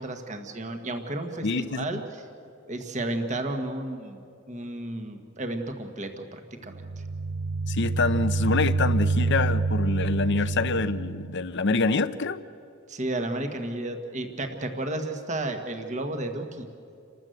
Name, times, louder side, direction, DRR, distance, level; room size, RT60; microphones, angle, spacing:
voice 1, 0.0-2.0 2.7-4.2 4.5-6.8 12.9-16.7, right 1 dB, 35° right, 1.6 m, -32 dB
voice 2, 1.4-2.0 7.7-12.4, left 3 dB, 60° left, 0.7 m, -26 dB
sound 1, 6.7-11.4, right 3 dB, 75° right, 0.7 m, -27 dB
29.0 x 13.5 x 7.9 m
head